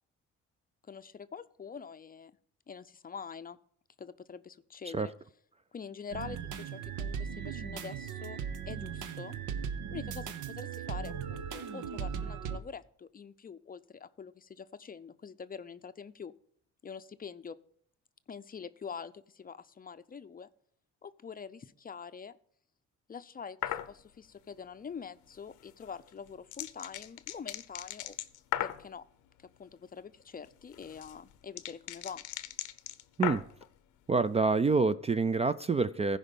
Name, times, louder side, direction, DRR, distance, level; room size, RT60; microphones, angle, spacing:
voice 1, 0.8-2.3 2.7-3.6 4.0-5.1 5.7-9.4 9.9-16.3 16.8-17.6 18.3-20.5 21.0-22.4 23.1-28.2 28.6-29.0 29.4-32.2, left 6 dB, 30° left, 12 dB, 0.5 m, -45 dB
sound 1, 6.1-12.6, right 7 dB, 80° right, 0.9 m, -38 dB
sound 2, 23.6-23.9 25.8-28.9 30.4-33.7, left 13 dB, 85° left, 0.7 m, -37 dB
voice 2, 34.1-36.2, right 4 dB, 20° right, 13 dB, 0.3 m, -27 dB
15.0 x 5.1 x 5.3 m, 0.62 s
cardioid pair, 90°, 30 cm